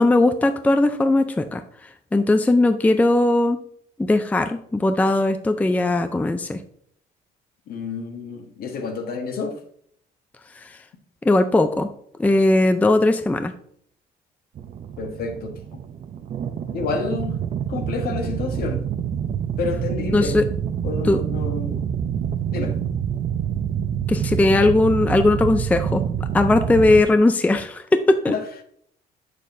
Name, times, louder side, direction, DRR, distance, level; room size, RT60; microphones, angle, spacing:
voice 1, 0.0-1.6 2.1-3.6 4.0-6.6 11.2-11.9 12.2-13.5 20.1-20.4 21.1-21.2 24.1-28.3, left 2 dB, 10° left, 0.4 m, -18 dB
voice 2, 7.7-9.6 15.0-15.6 16.7-17.4 17.7-18.9 19.6-20.5 20.8-21.8 22.5-22.8 28.3-28.7, left 4 dB, 65° left, 1.3 m, -29 dB
sound 1, 14.5-27.0, right 8 dB, 45° right, 0.7 m, -27 dB
7.2 x 6.5 x 2.6 m
cardioid pair, 110°, 17 cm